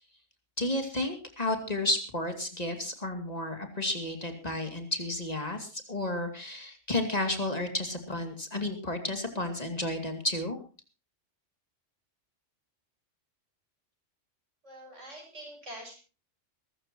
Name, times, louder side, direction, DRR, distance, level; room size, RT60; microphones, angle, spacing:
voice 1, 0.6-10.6, left 1 dB, 35° left, 6 dB, 2.6 m, -32 dB
voice 2, 14.6-16.0, right 1 dB, 85° right, 0 dB, 7.8 m, -45 dB
22.5 x 14.0 x 2.9 m, 0.35 s
omnidirectional pair, 1.2 m